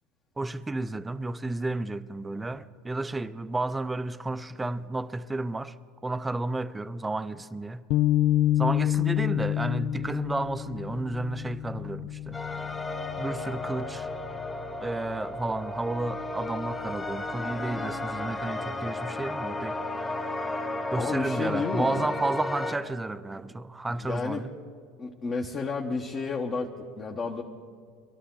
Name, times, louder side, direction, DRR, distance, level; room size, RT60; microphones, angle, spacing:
voice 1, 0.4-5.7 6.0-7.8 8.6-12.4 13.2-14.1 14.8-19.8 20.9-24.5, right 2 dB, 15° right, 0.5 m, -32 dB
sound 1, 7.9-14.3, left 13 dB, 65° left, 0.4 m, -28 dB
sound 2, 12.3-22.7, left 2 dB, 15° left, 1.2 m, -34 dB
voice 2, 21.0-22.1 24.0-24.4 25.0-27.4, left 4 dB, 35° left, 1.0 m, -31 dB
22.0 x 12.5 x 3.8 m
hypercardioid pair, 85°, 0 cm